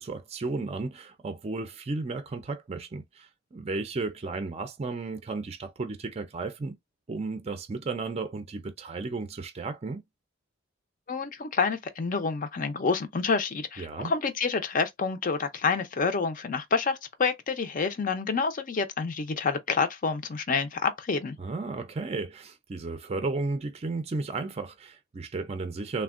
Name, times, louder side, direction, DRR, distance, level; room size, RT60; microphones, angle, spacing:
voice 1, 0.0-6.7 7.1-10.0 13.8-14.1 21.4-26.0, right 3 dB, 30° right, 0.4 m, -34 dB
voice 2, 11.1-21.4, left 4 dB, 45° left, 0.5 m, -28 dB
3.4 x 2.2 x 2.4 m
head